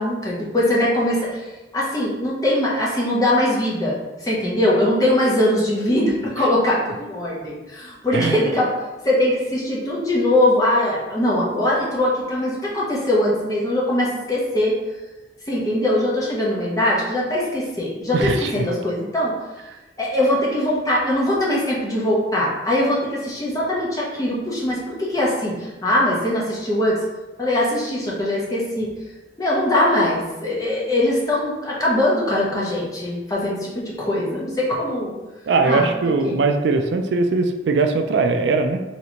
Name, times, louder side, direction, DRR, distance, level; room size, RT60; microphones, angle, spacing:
voice 1, 0.0-1.4 1.7-4.0 4.2-8.7 9.0-14.8 15.5-19.4 20.0-27.0 27.4-28.9 29.4-35.1 35.6-36.4, left 1 dB, 20° left, -5 dB, 0.9 m, -21 dB
voice 2, 8.1-8.4 18.1-18.7 35.5-38.8, right 3 dB, 80° right, 5 dB, 0.4 m, -20 dB
4.2 x 3.2 x 2.9 m, 1.1 s
head